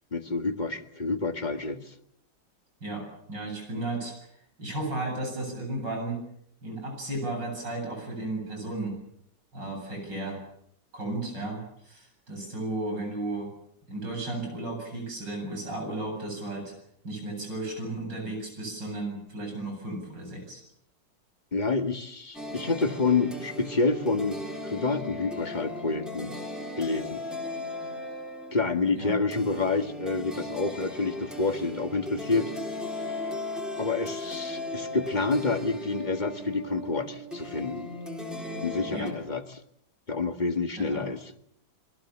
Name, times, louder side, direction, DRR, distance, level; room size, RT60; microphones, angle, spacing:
voice 1, 0.1-1.9 21.5-24.4 24.6-26.3 26.8-27.2 28.5-32.5 33.8-37.9 38.6-39.6 40.1-41.3, left 3 dB, 25° left, 7 dB, 1.7 m, -28 dB
voice 2, 2.8-4.1 4.6-6.2 6.6-8.9 9.5-10.4 10.9-13.5 13.9-16.7 17.0-20.6 28.9-29.2 38.9-39.1 40.8-41.1, right 2 dB, 85° right, 2 dB, 8.8 m, -34 dB
sound 1, 22.3-39.1, left 1 dB, ahead, 4.3 m, -37 dB
27.5 x 22.5 x 7.3 m, 0.72 s
omnidirectional pair, 1.9 m